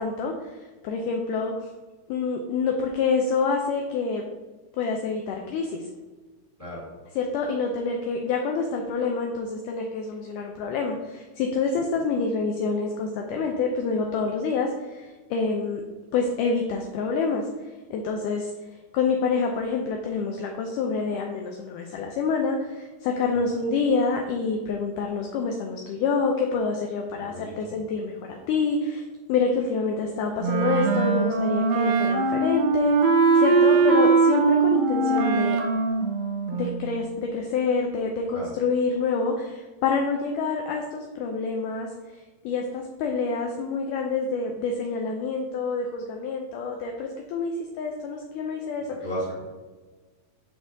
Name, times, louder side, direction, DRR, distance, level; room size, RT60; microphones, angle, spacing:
voice 1, 0.0-1.7 2.1-4.2 4.8-5.8 7.2-15.8 16.1-17.5 17.9-18.5 18.9-29.0 29.3-35.6 36.5-41.9 42.4-48.9, left 4 dB, 85° left, 2 dB, 1.8 m, -27 dB
voice 2, 27.1-27.8 38.3-38.5 49.0-49.4, equal, 25° right, -7 dB, 1.3 m, -35 dB
Wind instrument woodwind instrument, 30.4-37.0, right 4 dB, 85° right, 2.6 m, -21 dB
9.9 x 4.4 x 2.6 m, 1.3 s
omnidirectional pair, 4.3 m